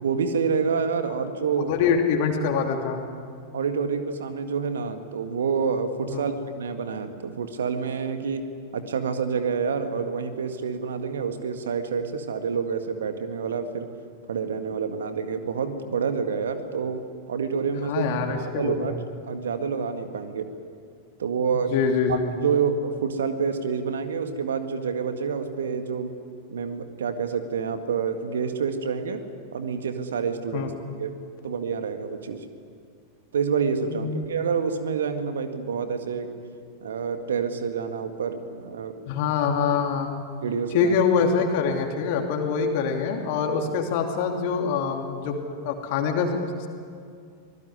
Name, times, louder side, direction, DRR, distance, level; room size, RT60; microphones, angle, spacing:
voice 1, 0.0-1.7 3.5-13.9 14.3-17.0 17.3-19.0 19.2-20.5 21.2-21.7 22.1-26.1 26.5-29.2 29.5-30.7 31.0-31.2 31.4-32.5 33.3-36.3 36.8-38.9 40.4-40.9, right 6 dB, 65° right, 8 dB, 1.9 m, -28 dB
voice 2, 1.7-3.0 6.1-6.3 17.9-18.9 21.6-22.2 30.5-30.7 33.9-34.2 39.1-40.1 40.7-46.7, left 6 dB, 50° left, 3 dB, 2.9 m, -25 dB
25.5 x 20.0 x 9.8 m, 2.3 s
figure-of-eight pair, 90°, 0 cm